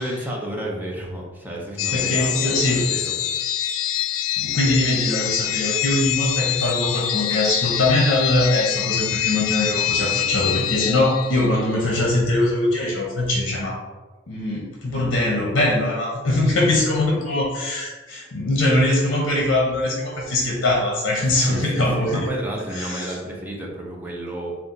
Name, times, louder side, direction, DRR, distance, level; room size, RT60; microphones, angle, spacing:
voice 1, 0.0-3.1 4.4-4.6 15.0-15.1 21.3-24.6, right 1 dB, 10° right, -2 dB, 0.7 m, -32 dB
sound 1, 1.8-11.6, left 11 dB, 80° left, 0.3 m, -25 dB
voice 2, 1.9-2.8 4.4-13.8 14.3-22.3 22.7-23.2, left 1 dB, 65° left, -3 dB, 0.8 m, -22 dB
4.1 x 2.4 x 3.9 m, 1.3 s
head